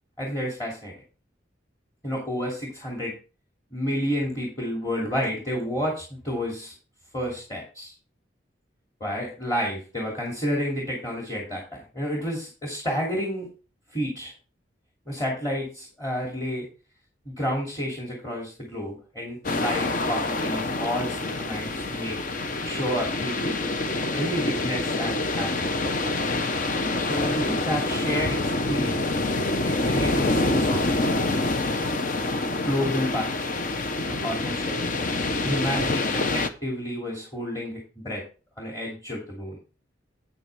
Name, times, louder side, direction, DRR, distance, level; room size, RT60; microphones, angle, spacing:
voice 1, 0.2-0.9 2.0-3.2 3.7-6.7 7.1-7.9 9.0-13.5 13.9-14.3 15.1-16.7 17.3-22.2 22.6-23.7 24.1-25.7 27.0-29.0 29.7-30.9 32.6-34.8 35.4-38.2 38.6-39.6, equal, 20° left, -3 dB, 2.7 m, -30 dB
sound 1, 19.4-36.5, left 2 dB, 45° left, 0.8 m, -26 dB
9.1 x 9.0 x 3.4 m, 0.33 s
head